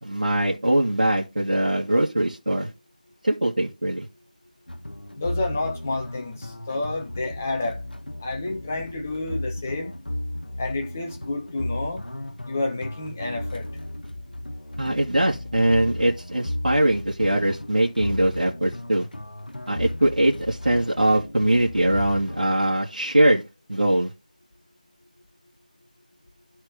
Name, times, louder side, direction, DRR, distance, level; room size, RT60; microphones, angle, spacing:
voice 1, 0.0-2.7 3.2-4.1 14.8-19.1 19.7-23.4 23.7-24.1, right 1 dB, 65° right, 2.0 m, -22 dB
sound 1, 4.7-22.5, left 1 dB, 85° left, 1.3 m, -35 dB
voice 2, 5.1-7.8 8.2-9.9 10.6-12.0 12.4-13.7, left 2 dB, 15° left, 1.0 m, -30 dB
11.5 x 4.4 x 5.2 m
figure-of-eight pair, 170°, 5 cm